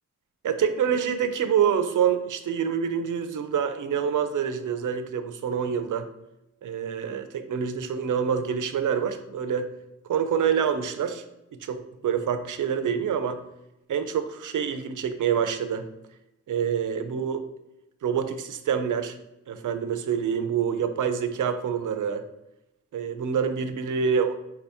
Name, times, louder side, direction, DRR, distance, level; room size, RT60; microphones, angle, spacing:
voice 1, 0.4-6.1 6.6-9.7 10.1-11.2 11.6-11.8 12.0-13.4 13.9-15.9 16.5-17.4 18.0-19.1 19.5-22.2 22.9-24.4, right 7 dB, 80° right, 9 dB, 0.5 m, -26 dB
4.7 x 2.7 x 3.4 m, 0.91 s
wide cardioid pair, 180°, 31 cm